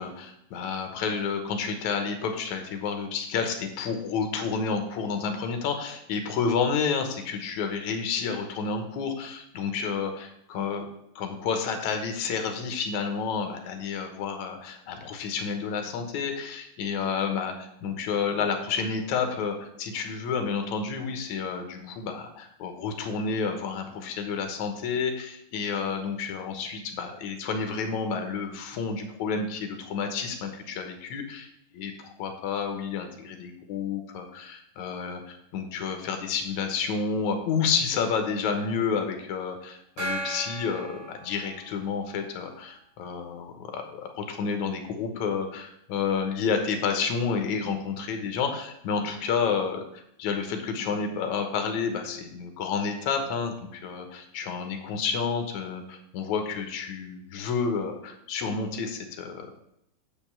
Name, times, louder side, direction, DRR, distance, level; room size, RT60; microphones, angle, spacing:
voice 1, 0.0-10.9 11.2-31.5 31.7-59.5, left 5 dB, 65° left, 5 dB, 2.1 m, -30 dB
Gong, 40.0-42.0, right 1 dB, 60° right, 4.8 m, -36 dB
7.5 x 5.2 x 7.3 m, 0.76 s
omnidirectional pair, 4.2 m